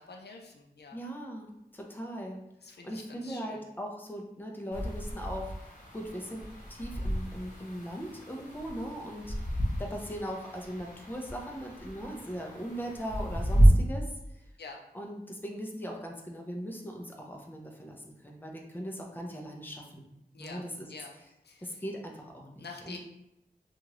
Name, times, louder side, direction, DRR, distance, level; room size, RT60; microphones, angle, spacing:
voice 1, 0.0-1.0 2.6-3.6 14.6-14.8 20.3-21.1 21.4-21.8 22.6-23.0, left 4 dB, 80° left, 2 dB, 0.4 m, -47 dB
voice 2, 0.9-2.4 2.8-5.5 5.9-6.4 6.7-14.4 14.9-20.1 20.4-20.9 21.6-23.0, equal, 10° left, 1 dB, 0.5 m, -39 dB
sound 1, 4.7-13.7, right 1 dB, 50° left, 0.8 m, -30 dB
2.9 x 2.4 x 2.9 m, 0.87 s
wide cardioid pair, 50°, 17 cm